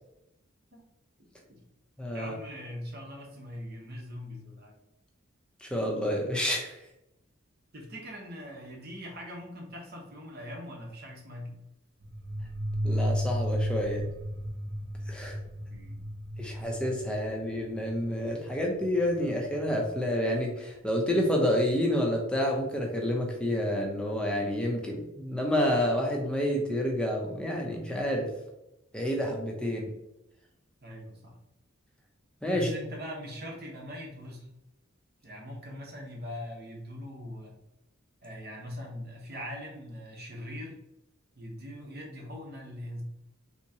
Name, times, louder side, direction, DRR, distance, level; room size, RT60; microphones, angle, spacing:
voice 1, 1.2-1.6 2.1-4.8 7.7-11.6 15.7-16.0 30.8-31.4 32.5-34.5 35.2-37.5 38.2-40.8 41.3-43.0, equal, 50° right, -1 dB, 0.9 m, -41 dB
voice 2, 2.0-2.4 5.6-6.8 12.8-14.1 15.1-15.4 16.4-28.3 28.9-29.9 32.4-32.7, equal, 5° left, 0 dB, 0.6 m, -29 dB
sound 1, 12.0-20.4, equal, 75° right, 1.3 m, -34 dB
3.5 x 2.9 x 2.8 m, 0.86 s
head